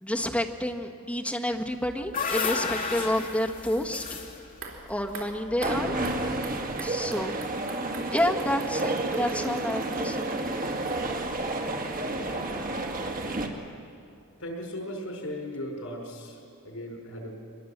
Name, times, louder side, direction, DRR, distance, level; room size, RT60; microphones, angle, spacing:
voice 1, 0.0-4.2 4.9-6.2 6.8-7.4 8.1-10.3, left 1 dB, 5° left, 0 dB, 1.5 m, -29 dB
sound 1, 1.7-5.9, left 5 dB, 45° left, 2.7 m, -33 dB
sound 2, 4.5-11.6 11.9-12.0, right 4 dB, 70° right, 3.6 m, -46 dB
sound 3, 5.6-13.5, right 2 dB, 40° right, 2.1 m, -30 dB
voice 2, 14.4-17.3, equal, 85° left, 1 dB, 5.3 m, -37 dB
24.0 x 21.0 x 7.4 m, 2.4 s
head